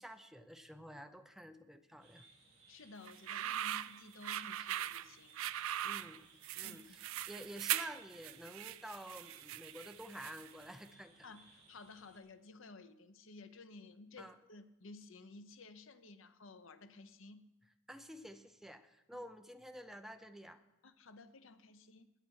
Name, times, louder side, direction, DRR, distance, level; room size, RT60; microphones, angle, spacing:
voice 1, 0.0-2.3 5.8-6.3 6.5-11.1 14.2-14.4 17.9-20.6, equal, ahead, 7 dB, 0.7 m, -50 dB
sound 1, 2.0-12.2, right 4 dB, 40° right, 5.6 m, -64 dB
voice 2, 2.5-5.4 6.6-7.2 11.2-17.4 19.1-19.2 20.8-22.1, left 3 dB, 70° left, 11 dB, 0.8 m, -55 dB
sound 2, 3.1-10.6, right 12 dB, 80° right, 0.4 m, -40 dB
17.5 x 10.0 x 4.8 m, 0.93 s
head